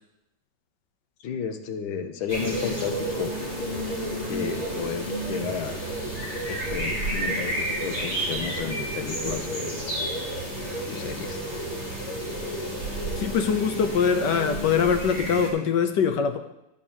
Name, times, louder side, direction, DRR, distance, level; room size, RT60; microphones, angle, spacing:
voice 1, 1.2-3.4 4.3-5.9 6.5-9.8 10.9-11.4, left 7 dB, 90° left, 7 dB, 1.7 m, -32 dB
sound 1, 2.3-15.5, right 1 dB, 50° left, 3.4 m, -31 dB
voice 2, 13.2-16.4, left 6 dB, 70° left, 9 dB, 1.3 m, -23 dB
12.5 x 4.9 x 7.2 m, 0.89 s
omnidirectional pair, 2.1 m